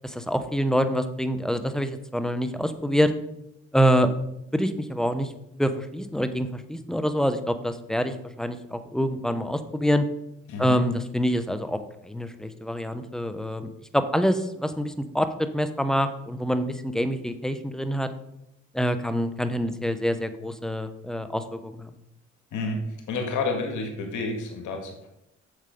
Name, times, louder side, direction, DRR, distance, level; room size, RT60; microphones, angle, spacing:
voice 1, 0.0-3.1 3.7-4.1 4.5-5.3 5.6-10.0 10.6-13.6 13.9-18.1 18.7-21.9, equal, ahead, 10 dB, 1.0 m, -26 dB
voice 2, 10.5-10.8 22.5-25.1, left 3 dB, 80° left, 3 dB, 2.1 m, -30 dB
7.8 x 7.2 x 5.3 m, 0.82 s
supercardioid pair, 70°, 30 cm